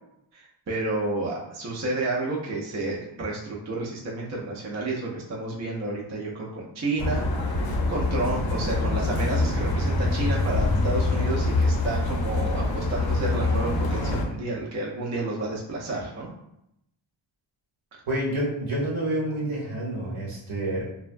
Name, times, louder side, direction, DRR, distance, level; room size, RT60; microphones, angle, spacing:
voice 1, 0.3-7.6 7.9-16.3, right 2 dB, 35° right, -4 dB, 0.5 m, -30 dB
sound 1, 7.0-14.2, left 2 dB, 50° left, 0.6 m, -25 dB
voice 2, 18.1-20.8, right 1 dB, 75° right, -4 dB, 1.1 m, -28 dB
2.9 x 2.2 x 2.5 m, 0.79 s
wide cardioid pair, 130°, 49 cm